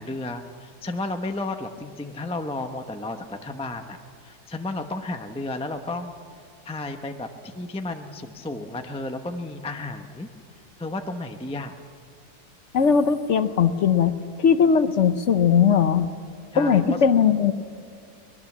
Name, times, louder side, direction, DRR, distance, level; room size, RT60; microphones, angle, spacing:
voice 1, 0.0-4.0 4.2-6.2 6.6-10.3 10.8-11.7 16.5-17.0, left 2 dB, 5° left, 5 dB, 0.7 m, -32 dB
voice 2, 12.7-16.1 16.6-17.5, left 7 dB, 55° left, 11 dB, 1.0 m, -19 dB
24.5 x 20.0 x 7.4 m, 2.3 s
omnidirectional pair, 1.7 m